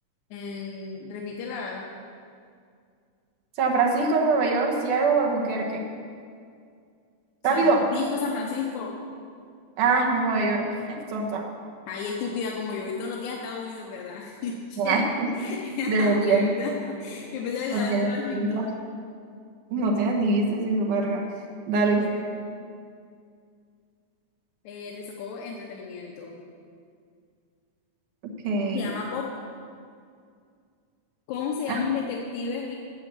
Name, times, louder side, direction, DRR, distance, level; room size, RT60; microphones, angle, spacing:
voice 1, 0.3-1.8 7.5-7.7 7.9-9.0 11.9-15.0 15.3-18.7 21.8-22.2 24.6-26.4 28.7-29.4 31.3-32.8, left 5 dB, 75° left, -2 dB, 2.3 m, -33 dB
voice 2, 3.6-5.8 7.4-7.8 9.8-11.4 14.8-15.3 15.9-16.4 17.7-18.7 19.7-21.2 21.7-22.1 28.2-28.9 31.7-31.8, right 3 dB, 85° right, 0 dB, 2.9 m, -23 dB
11.0 x 7.1 x 7.6 m, 2.2 s
omnidirectional pair, 3.5 m